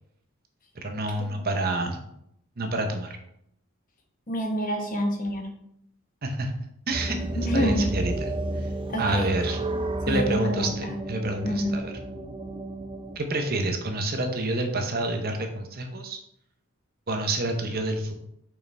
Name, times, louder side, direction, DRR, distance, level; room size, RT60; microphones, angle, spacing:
voice 1, 0.8-2.0 2.6-3.2 6.2-6.5 6.9-8.3 8.6-8.7 9.0-9.6 10.1-11.9 13.2-16.2 17.1-18.2, right 2 dB, 45° right, 5 dB, 0.8 m, -28 dB
voice 2, 4.3-5.5 7.4-7.9 8.9-9.3 10.1-10.9 11.4-11.8, equal, 40° left, 3 dB, 1.2 m, -27 dB
sound 1, 6.9-13.2, right 1 dB, 25° right, 0.5 m, -32 dB
6.8 x 5.6 x 3.4 m, 0.74 s
head